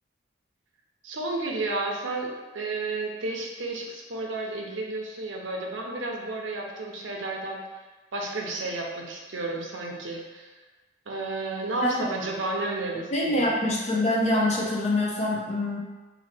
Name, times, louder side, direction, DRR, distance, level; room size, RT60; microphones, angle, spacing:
voice 1, 1.0-7.6 8.1-10.5 11.1-13.5, right 2 dB, 80° right, 0 dB, 0.6 m, -32 dB
voice 2, 13.1-15.8, left 1 dB, 35° left, -3 dB, 0.6 m, -25 dB
2.9 x 2.8 x 4.2 m, 1.2 s
head